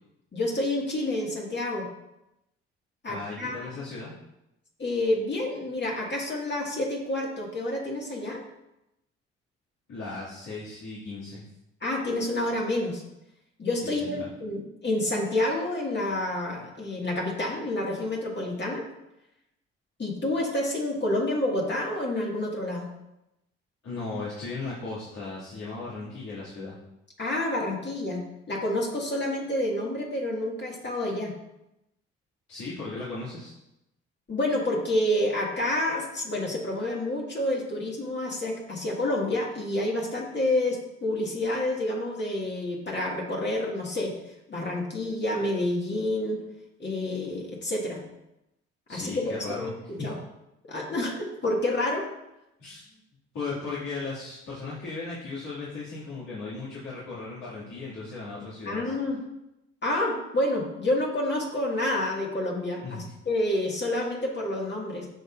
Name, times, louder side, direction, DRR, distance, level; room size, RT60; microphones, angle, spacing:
voice 1, 0.3-1.9 3.0-3.6 4.8-8.4 11.8-13.0 13.6-18.9 20.0-22.9 27.2-28.2 28.5-31.3 34.3-44.1 44.5-46.4 46.8-48.0 48.9-49.7 50.0-50.1 50.7-52.1 58.7-59.2 59.8-65.1, left 1 dB, 35° left, -2 dB, 1.9 m, -28 dB
voice 2, 3.1-4.1 9.9-11.4 13.8-14.3 23.8-26.8 32.5-33.5 48.9-49.7 50.0-50.1 52.6-53.0 53.3-58.9 62.8-63.1, left 3 dB, 60° left, -9 dB, 2.3 m, -36 dB
8.9 x 5.6 x 2.5 m, 0.89 s
hypercardioid pair, 45°, 31 cm